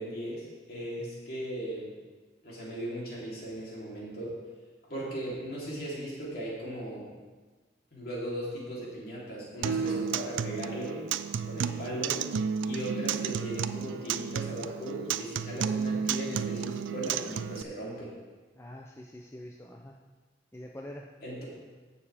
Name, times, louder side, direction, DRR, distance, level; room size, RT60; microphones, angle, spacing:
voice 1, 0.0-1.9 2.4-4.4 4.8-7.1 7.9-11.0 11.4-12.2 12.6-18.1 21.2-21.5, right 1 dB, 50° left, -5 dB, 3.2 m, -37 dB
Acoustic guitar, 9.6-17.6, right 7 dB, 80° right, 0.4 m, -32 dB
voice 2, 18.5-20.0 20.5-21.1, left 1 dB, 15° left, 0 dB, 0.5 m, -45 dB
16.0 x 6.8 x 3.4 m, 1.3 s
head